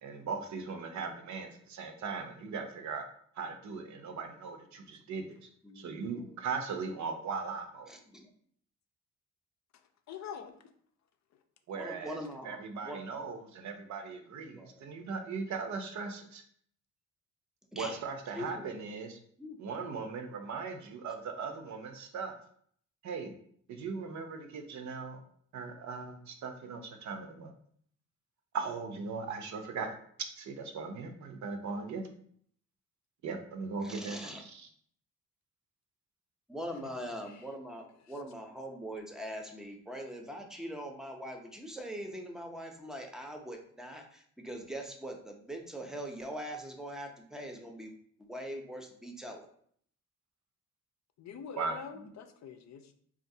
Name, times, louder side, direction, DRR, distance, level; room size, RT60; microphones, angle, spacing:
voice 1, 0.0-3.0 3.4-5.4 5.8-7.9 11.7-12.2 12.4-16.4 17.7-19.2 19.6-22.3 23.0-23.3 23.7-25.2 25.5-27.5 28.5-29.9 30.4-32.1 33.2-34.7 51.6-51.8, right 5 dB, 65° right, 6 dB, 0.7 m, -39 dB
voice 2, 5.6-6.4 7.9-8.3 11.7-12.6 12.8-13.0 14.5-14.8 17.7-18.0 18.3-18.7 19.4-19.6 33.8-34.4 36.5-49.5 51.9-52.1, equal, ahead, 2 dB, 0.6 m, -42 dB
voice 3, 10.1-10.5 36.7-36.9 37.3-37.4 51.2-52.9, left 7 dB, 60° left, 6 dB, 0.5 m, -45 dB
3.7 x 2.4 x 2.7 m, 0.62 s
cardioid pair, 85°, 30 cm